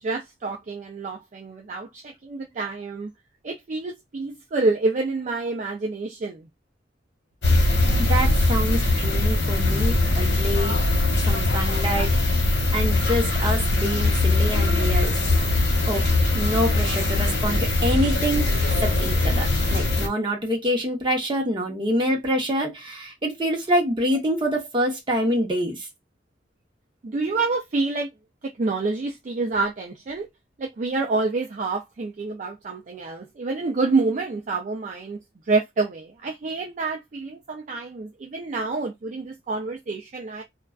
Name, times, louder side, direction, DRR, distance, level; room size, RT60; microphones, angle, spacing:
voice 1, 0.0-3.1 3.4-6.5 27.0-28.1 28.4-30.3 30.6-35.2 35.5-40.4, right 3 dB, 45° right, 0.4 m, -27 dB
sound 1, 7.4-20.1, left 2 dB, 80° left, 0.9 m, -21 dB
voice 2, 8.0-10.9 11.2-12.2 12.7-15.1 15.9-18.5 18.8-25.9, equal, 30° right, 0.8 m, -26 dB
2.4 x 2.2 x 2.3 m
head